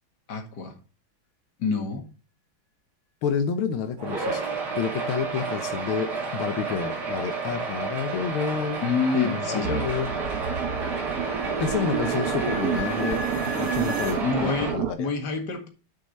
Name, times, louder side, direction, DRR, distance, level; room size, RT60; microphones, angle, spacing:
voice 1, 0.3-0.8 1.6-2.1 8.8-9.8 14.2-15.7, left 4 dB, 55° left, 3 dB, 2.4 m, -28 dB
voice 2, 3.2-4.4 4.8-8.8 9.1-10.1 10.7-10.9 11.6-13.2 13.6-15.1, left 6 dB, 90° left, 8 dB, 1.8 m, -29 dB
sound 1, 4.0-14.7, right 4 dB, 75° right, 3.3 m, -31 dB
sound 2, 8.3-14.2, equal, 45° right, 1.7 m, -40 dB
sound 3, 9.6-14.9, right 8 dB, 60° right, 1.0 m, -29 dB
11.0 x 6.6 x 4.3 m, 0.33 s
omnidirectional pair, 2.2 m